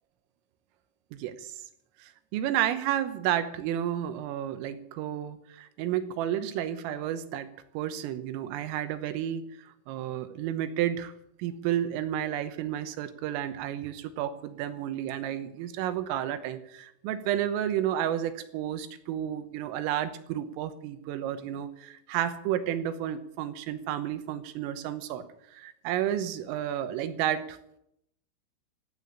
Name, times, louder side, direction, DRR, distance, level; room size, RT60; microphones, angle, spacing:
voice 1, 1.1-1.5 2.0-7.5 7.8-9.5 9.9-11.1 11.4-25.2 25.5-27.6, right 11 dB, 85° right, 10 dB, 3.6 m, -31 dB
16.0 x 8.6 x 8.5 m, 0.77 s
omnidirectional pair, 5.8 m